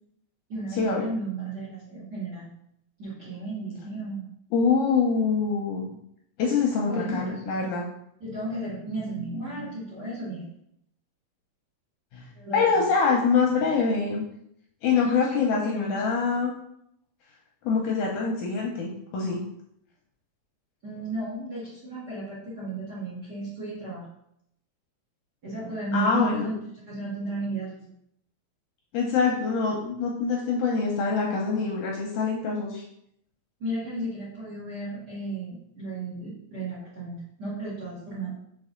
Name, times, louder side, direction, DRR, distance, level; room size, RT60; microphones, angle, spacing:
voice 1, 0.5-2.5 3.0-4.2 6.9-7.5 8.2-10.5 12.3-12.9 15.0-16.0 20.8-24.1 25.4-26.6 26.9-27.9 33.6-38.4, right 2 dB, 40° right, -7 dB, 1.6 m, -34 dB
voice 2, 4.5-5.9 6.4-7.8 12.1-12.3 12.5-14.2 14.8-16.5 17.6-19.4 25.9-26.5 28.9-32.8, left 5 dB, 75° left, -1 dB, 1.9 m, -25 dB
5.3 x 4.7 x 3.7 m, 0.74 s
omnidirectional pair, 4.2 m